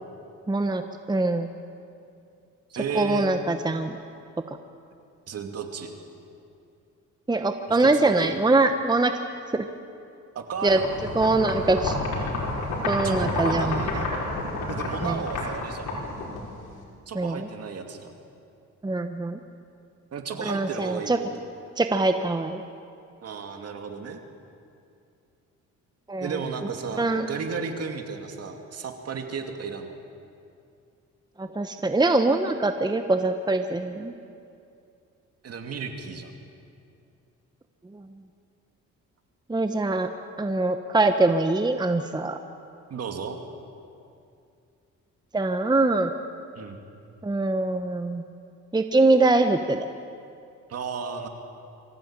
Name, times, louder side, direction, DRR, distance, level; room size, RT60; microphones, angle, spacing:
voice 1, 0.5-0.8 1.1-1.5 2.9-4.0 4.5-4.6 7.3-9.1 9.5-9.7 10.6-10.8 11.1-12.0 12.8-13.8 15.0-15.2 17.1-17.5 18.8-19.4 20.4-21.2 21.8-22.6 26.1-26.4 27.0-27.3 31.4-34.1 37.9-38.1 39.5-40.1 40.4-42.4 45.3-46.1 47.2-48.2 48.7-49.9, right 2 dB, 15° right, 7 dB, 1.1 m, -23 dB
voice 2, 2.7-3.3 5.3-5.9 7.7-8.3 10.3-10.9 13.0-14.1 14.7-15.9 17.1-18.1 20.1-21.1 21.4-21.5 23.2-24.2 26.2-29.9 35.4-36.3 42.9-43.4 46.6-46.8 50.7-51.3, right 5 dB, 55° right, 5 dB, 2.6 m, -34 dB
sound 1, 10.7-16.8, left 2 dB, 85° left, 5.1 m, -30 dB
24.0 x 15.5 x 8.9 m, 2.5 s
cardioid pair, 90°, 30 cm